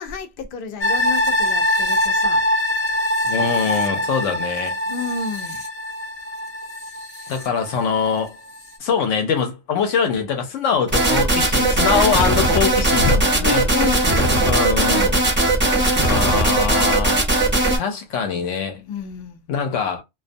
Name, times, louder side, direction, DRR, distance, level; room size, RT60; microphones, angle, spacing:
voice 1, 0.0-2.4 4.9-5.7 12.7-14.5 18.9-19.4, left 4 dB, 60° left, 0.6 m, -28 dB
sound 1, 0.8-8.1 8.5-8.6, left 1 dB, 30° left, 0.9 m, -23 dB
voice 2, 3.2-4.8 7.3-8.4 8.8-13.6 14.4-15.2 16.0-17.2 17.8-18.9 19.5-20.0, left 6 dB, 75° left, 0.9 m, -23 dB
sound 2, 10.9-17.8, right 2 dB, 10° right, 0.5 m, -18 dB
2.3 x 2.3 x 2.5 m
omnidirectional pair, 1.3 m